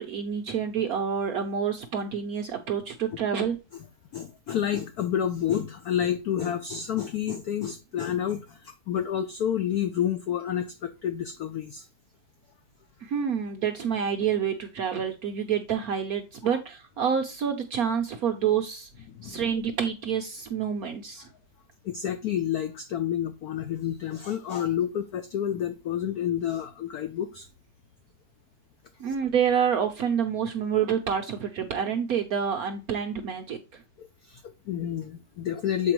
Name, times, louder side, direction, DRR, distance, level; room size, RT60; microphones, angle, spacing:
voice 1, 0.0-3.6 13.0-18.9 19.2-21.3 29.0-33.8, right 7 dB, 70° right, 0.8 m, -28 dB
voice 2, 4.1-11.9 16.4-16.6 19.1-19.4 21.8-27.5 34.0-35.9, left 9 dB, 80° left, 0.8 m, -29 dB
7.4 x 4.5 x 3.0 m
omnidirectional pair, 2.2 m